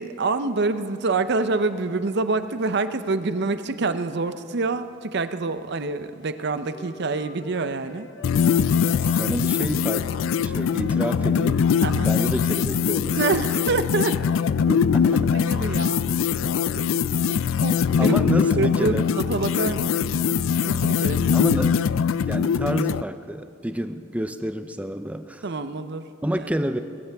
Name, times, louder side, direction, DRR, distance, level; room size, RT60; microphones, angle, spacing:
voice 1, 0.0-8.1 11.8-12.1 13.2-14.2 15.3-16.1 17.6-18.2 18.6-21.3 25.4-26.5, right 3 dB, 60° right, 11 dB, 0.7 m, -27 dB
Wind instrument woodwind instrument, 6.3-12.6, left 4 dB, 60° left, 1.2 m, -45 dB
sound 1, 8.2-23.0, left 7 dB, 85° left, 0.3 m, -22 dB
voice 2, 9.0-11.7 12.0-13.2 14.7-15.6 18.0-19.2 21.3-21.9 22.3-25.4 26.2-26.8, right 1 dB, 5° right, 9 dB, 0.5 m, -29 dB
21.0 x 15.0 x 3.5 m, 2.6 s
head